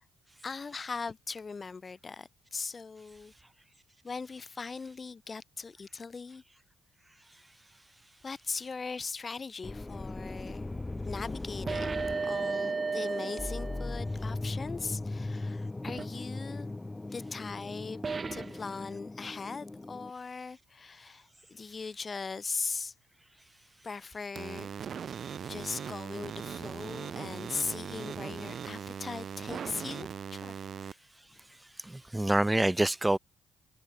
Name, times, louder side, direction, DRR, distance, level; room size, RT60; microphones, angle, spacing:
voice 1, 0.4-3.3 4.0-6.4 8.2-10.7 11.0-16.7 17.1-18.0 18.3-22.9 23.8-24.7 25.5-31.0, left 4 dB, 40° left, 3.7 m, -39 dB
sound 1, 9.6-20.1, left 2 dB, 20° left, 2.6 m, -38 dB
sound 2, 11.7-14.2 15.9-16.1 18.0-18.6, right 4 dB, 40° right, 1.5 m, -34 dB
sound 3, 24.4-30.9, right 7 dB, 55° right, 2.8 m, -40 dB
voice 2, 31.9-33.2, right 1 dB, 15° right, 0.5 m, -26 dB
hypercardioid pair, 45°, 0 cm